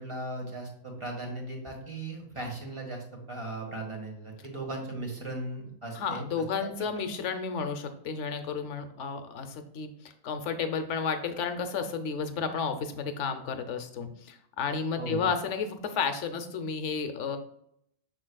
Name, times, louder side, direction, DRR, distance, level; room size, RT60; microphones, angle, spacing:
voice 1, 0.0-6.2 6.6-6.7 15.0-15.3, right 2 dB, 20° right, -1 dB, 1.7 m, -37 dB
voice 2, 5.9-17.4, left 5 dB, 65° left, 8 dB, 1.1 m, -32 dB
6.6 x 6.3 x 2.3 m, 0.71 s
omnidirectional pair, 1.4 m